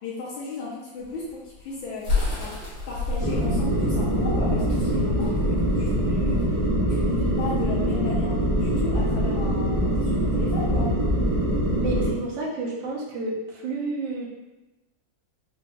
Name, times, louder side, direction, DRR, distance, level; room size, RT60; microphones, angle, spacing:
voice 1, 0.0-2.1 2.4-2.5 2.9-6.4 6.9-10.9, left 3 dB, 80° left, -6 dB, 1.5 m, -35 dB
sound 1, 1.0-6.6, left 3 dB, 55° left, 1.9 m, -30 dB
sound 2, 3.2-12.1, equal, 30° right, 0.5 m, -23 dB
voice 2, 11.8-14.3, right 3 dB, 80° right, -2 dB, 1.5 m, -30 dB
5.5 x 2.3 x 2.2 m, 1.0 s
omnidirectional pair, 2.1 m